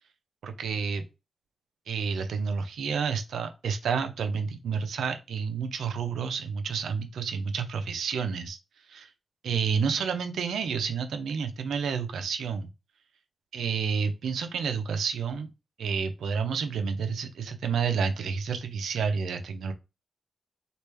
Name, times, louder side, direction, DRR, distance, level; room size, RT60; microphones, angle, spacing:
voice 1, 0.4-1.0 1.9-8.6 8.9-9.1 9.4-12.7 13.5-15.5 15.8-19.7, right 6 dB, 80° right, 8 dB, 0.5 m, -30 dB
3.2 x 2.5 x 3.3 m, 0.27 s
supercardioid pair, 45°, 0 cm